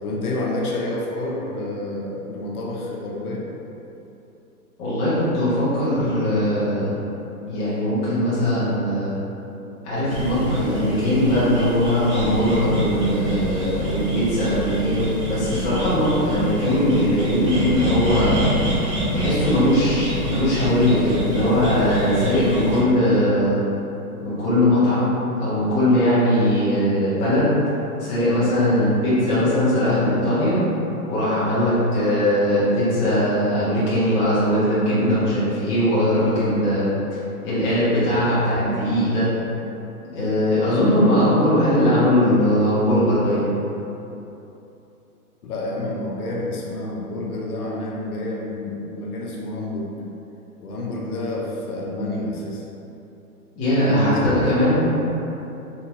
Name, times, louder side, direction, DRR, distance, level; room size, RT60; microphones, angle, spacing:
voice 1, 0.0-3.5 45.4-49.9 50.6-52.6 53.8-54.5, left 2 dB, 75° left, -2 dB, 0.8 m, -28 dB
voice 2, 4.8-7.0 7.4-9.1 9.8-18.4 19.1-23.6 24.2-27.6 28.0-30.6 31.1-36.9 37.4-39.3 40.1-43.5 53.6-54.8, equal, 15° left, -11 dB, 0.5 m, -20 dB
sound 1, 10.1-22.8, equal, 30° right, 1.3 m, -27 dB
3.5 x 2.5 x 2.9 m, 2.9 s
hypercardioid pair, 140°, 46 cm